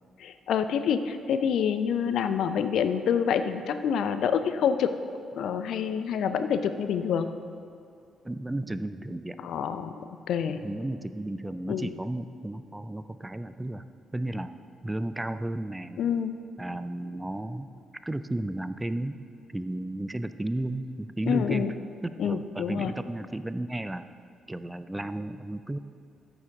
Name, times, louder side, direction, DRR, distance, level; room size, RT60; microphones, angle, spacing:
voice 1, 0.2-4.9 5.4-7.3 9.4-10.6 11.7-11.9 16.0-16.3 21.3-21.7 22.2-22.9, left 7 dB, 55° left, 10 dB, 0.4 m, -27 dB
voice 2, 8.2-9.4 10.5-13.8 14.1-14.5 14.8-16.0 16.6-17.7 18.0-19.2 19.5-21.7 22.2-24.1 24.5-25.8, right 1 dB, 15° right, 12 dB, 0.4 m, -33 dB
13.5 x 7.1 x 3.7 m, 2.4 s
figure-of-eight pair, 40°, 0 cm